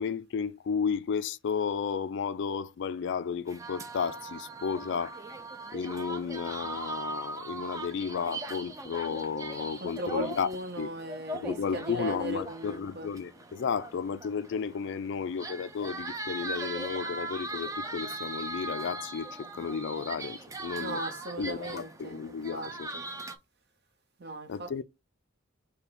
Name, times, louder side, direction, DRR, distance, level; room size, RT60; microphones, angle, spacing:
voice 1, 0.0-5.2 5.7-10.5 10.8-10.9 11.3-21.0 21.4-22.9 24.5-24.8, left 6 dB, 60° left, 0.3 m, -33 dB
sound 1, 3.5-23.4, right 2 dB, 15° right, 0.5 m, -40 dB
voice 2, 9.8-13.1 20.8-23.1 24.2-24.8, right 1 dB, 50° right, 1.0 m, -38 dB
5.5 x 2.2 x 4.1 m
head